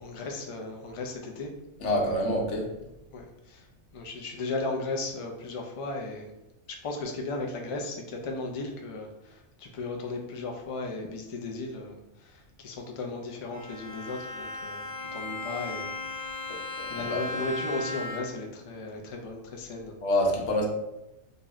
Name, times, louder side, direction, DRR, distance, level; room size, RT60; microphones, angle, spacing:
voice 1, 0.0-1.5 3.1-3.7 3.9-6.3 6.8-16.4 16.9-19.9, left 3 dB, 45° left, 1 dB, 0.4 m, -36 dB
voice 2, 1.8-2.7 16.8-17.4 20.0-20.7, left 1 dB, 85° left, 0 dB, 1.1 m, -27 dB
Bowed string instrument, 13.5-18.6, left 2 dB, 25° right, 1.2 m, -36 dB
3.1 x 2.7 x 3.6 m, 0.92 s
omnidirectional pair, 1.2 m